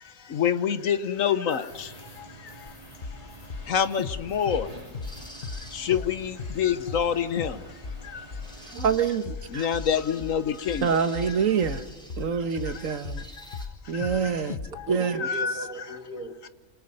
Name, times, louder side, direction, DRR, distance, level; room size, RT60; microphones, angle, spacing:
voice 1, 0.4-1.6 3.7-4.0 4.3-4.6 5.9-6.1 6.6-7.5 9.6-10.9 15.2-15.5, left 8 dB, 70° left, 1.4 m, -25 dB
sound 1, 1.5-13.7, equal, 5° left, 4.0 m, -50 dB
sound 2, 1.7-8.8, right 2 dB, 25° right, 3.2 m, -48 dB
sound 3, 2.7-2.8 3.0-3.2 3.5-5.7 5.9-6.1 6.4-6.6 6.9-7.1 7.4-7.6 7.8-13.3 13.5-14.2 14.5-14.7, left 4 dB, 40° left, 1.1 m, -36 dB
voice 2, 8.7-9.7 10.8-11.8 12.2-13.3 13.9-14.6 14.9-15.3, right 6 dB, 70° right, 1.5 m, -26 dB
voice 3, 14.9-16.5, right 1 dB, 85° right, 2.6 m, -39 dB
27.5 x 27.0 x 5.5 m
omnidirectional pair, 1.5 m